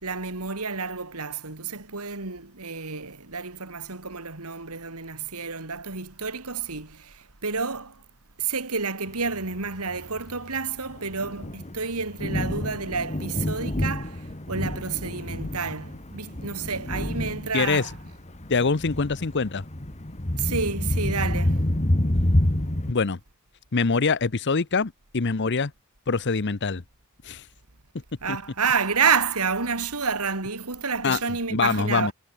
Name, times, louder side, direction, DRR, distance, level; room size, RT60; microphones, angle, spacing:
voice 1, 0.0-8.0 8.4-18.0 20.4-21.6 28.2-32.1, right 5 dB, 85° right, 2.9 m, -29 dB
Thunder, 9.3-22.9, left 1 dB, 30° left, 1.6 m, -28 dB
voice 2, 17.5-17.9 18.5-19.6 22.9-23.2 23.7-25.7 26.1-26.8 27.2-27.4 28.3-28.4 31.0-31.2 31.5-32.1, left 4 dB, 50° left, 0.8 m, -24 dB
head